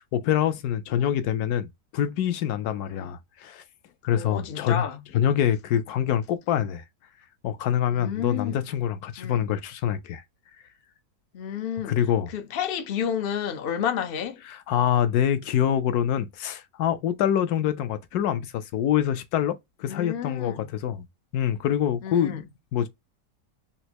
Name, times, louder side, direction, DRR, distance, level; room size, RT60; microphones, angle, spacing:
voice 1, 0.0-3.6 4.0-4.8 5.1-6.8 7.4-10.2 11.8-12.3 14.5-21.0 21.3-22.5 22.7-22.9, left 10 dB, 70° left, 1.0 m, -25 dB
voice 2, 4.1-5.0 7.9-8.6 9.2-9.4 11.3-12.0 12.3-14.4 19.9-20.7 22.0-22.5, left 8 dB, 90° left, 0.5 m, -31 dB
4.2 x 2.1 x 2.8 m
omnidirectional pair, 1.9 m